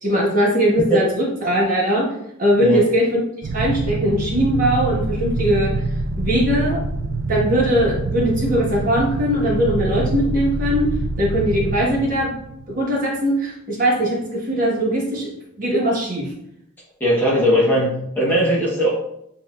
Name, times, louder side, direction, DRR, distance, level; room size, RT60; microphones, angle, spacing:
voice 1, 0.0-2.1 2.4-3.2 3.5-5.7 6.2-6.8 7.3-10.9 11.2-12.3 12.7-15.3 15.6-16.2, equal, 40° right, -4 dB, 1.3 m, -20 dB
sound 1, 3.4-13.0, right 2 dB, 70° right, 0.3 m, -25 dB
voice 2, 17.0-18.9, equal, 10° left, -6 dB, 1.1 m, -18 dB
7.7 x 2.8 x 2.4 m, 0.78 s
head